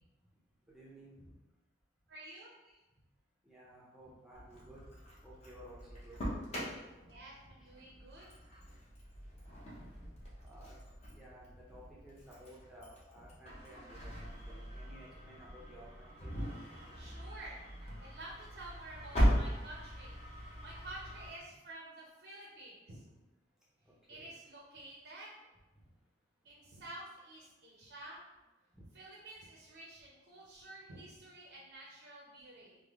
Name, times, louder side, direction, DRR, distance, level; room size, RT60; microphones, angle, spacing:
voice 1, 0.7-1.1 3.5-4.8 5.2-5.8 6.0-6.2 10.5-10.7 11.1-16.3 19.0-19.3 24.1-24.3, right 1 dB, 5° right, -6 dB, 0.5 m, -55 dB
voice 2, 2.1-2.5 7.0-8.4 16.9-17.7 18.0-20.2 20.6-23.0 24.1-25.4 26.4-28.2 28.9-32.8, right 1 dB, 60° right, -3 dB, 0.5 m, -50 dB
Engine starting, 4.3-21.3, equal, 35° left, 0.7 m, -39 dB
3.3 x 2.0 x 3.5 m, 1.1 s
head